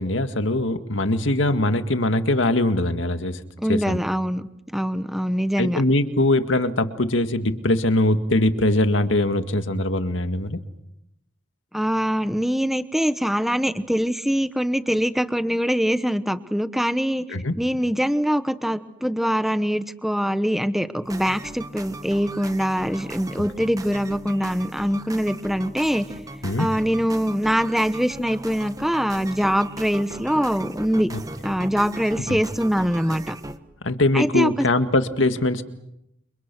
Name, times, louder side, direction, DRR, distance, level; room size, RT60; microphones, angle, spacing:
voice 1, 0.0-3.4 3.7-4.0 5.6-10.6 17.3-17.5 26.4-26.7 31.1-31.2 32.3-32.4 33.8-35.6, left 1 dB, 85° left, 8 dB, 1.9 m, -22 dB
voice 2, 3.6-5.8 11.7-17.2 17.6-26.1 26.6-31.1 31.4-33.3 34.1-34.7, equal, ahead, 11 dB, 1.1 m, -23 dB
sound 1, 21.0-33.6, right 2 dB, 20° right, 1.3 m, -38 dB
30.0 x 27.5 x 6.2 m, 0.82 s
head